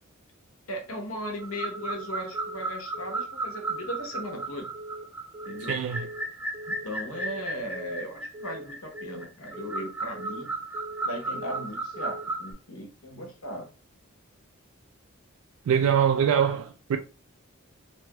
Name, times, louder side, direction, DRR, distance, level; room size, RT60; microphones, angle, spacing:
voice 1, 0.7-4.7 5.4-5.8 6.7-10.5 11.0-13.7, equal, 80° left, 1.0 m, -37 dB
Telephone, 1.1-1.4 1.7-2.0 2.3-2.6 2.9-3.2 3.5-3.8 4.1-4.4 4.7-5.0 5.3-5.6 5.9-6.2 6.5-6.8 7.1-7.4 7.7-8.0 8.3-8.6 8.9-9.2 9.5-9.8 10.1-10.4 10.7-11.0 11.3-11.6 11.9-12.2, right 2 dB, 50° right, 0.8 m, -41 dB
sound 1, 1.4-12.5, right 2 dB, 10° right, 0.4 m, -35 dB
voice 2, 5.7-6.1 15.7-17.0, right 8 dB, 80° right, 0.3 m, -23 dB
3.0 x 2.2 x 2.9 m
head